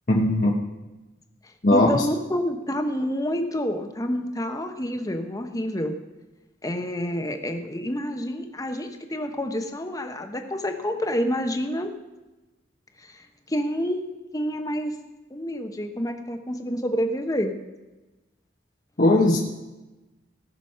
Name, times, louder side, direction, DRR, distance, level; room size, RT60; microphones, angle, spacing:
voice 1, 0.1-0.5 1.6-2.0 19.0-19.4, left 1 dB, 45° left, -2 dB, 1.1 m, -18 dB
voice 2, 1.4-5.9 6.6-11.9 13.0-14.9 15.3-17.5, equal, 20° left, 5 dB, 1.0 m, -28 dB
17.0 x 6.2 x 5.6 m, 1.1 s
head